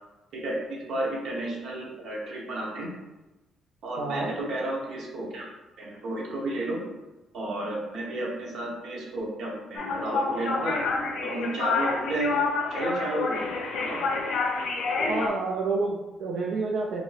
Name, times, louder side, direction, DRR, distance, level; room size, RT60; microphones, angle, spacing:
voice 1, 0.3-2.9 3.8-5.4 5.8-6.8 7.3-10.8 11.2-12.4 12.7-13.5 13.9-14.0, right 1 dB, 60° right, -2 dB, 0.8 m, -32 dB
voice 2, 4.0-4.3 15.1-17.0, right 3 dB, 75° right, -2 dB, 0.3 m, -28 dB
sound 1, 9.8-15.3, left 4 dB, 75° left, 0.5 m, -28 dB
2.7 x 2.6 x 3.1 m, 1.1 s
cardioid pair, 160°, 0 cm